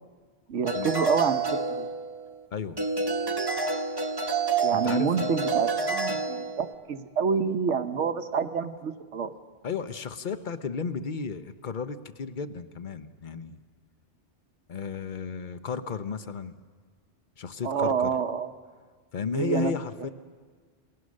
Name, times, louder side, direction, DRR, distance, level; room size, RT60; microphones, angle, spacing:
voice 1, 0.5-1.9 4.6-9.3 17.6-18.5 19.3-19.7, right 6 dB, 90° right, 9 dB, 1.3 m, -28 dB
sound 1, 0.7-2.4 2.8-6.7, right 4 dB, 20° right, 0.9 m, -28 dB
voice 2, 2.5-2.8 4.7-5.3 9.6-13.6 14.7-16.6 17.4-18.1 19.1-20.1, left 6 dB, 45° left, 11 dB, 0.9 m, -34 dB
28.0 x 18.5 x 6.4 m, 1.5 s
omnidirectional pair, 1.2 m